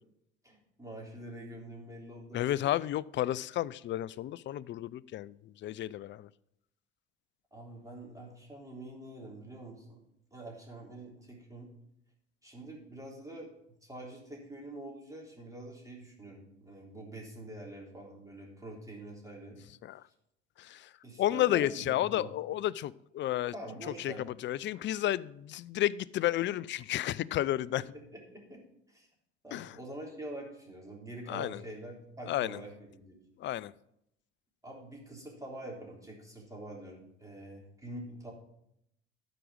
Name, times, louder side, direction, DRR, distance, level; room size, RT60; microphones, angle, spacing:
voice 1, 0.4-2.4 7.5-10.0 10.3-11.7 12.4-13.5 13.8-19.6 21.0-22.3 23.5-24.3 27.9-28.6 28.9-29.1 29.4-33.2 34.6-38.3, right 1 dB, 10° right, -2 dB, 3.6 m, -45 dB
voice 2, 2.3-5.3 5.6-6.3 19.8-20.0 20.6-20.9 21.2-23.5 24.0-27.8 29.5-29.8 31.3-31.6 32.3-32.6 33.4-33.7, left 13 dB, 35° left, 21 dB, 0.4 m, -32 dB
12.5 x 5.1 x 6.3 m, 0.78 s
hypercardioid pair, 70°, 35 cm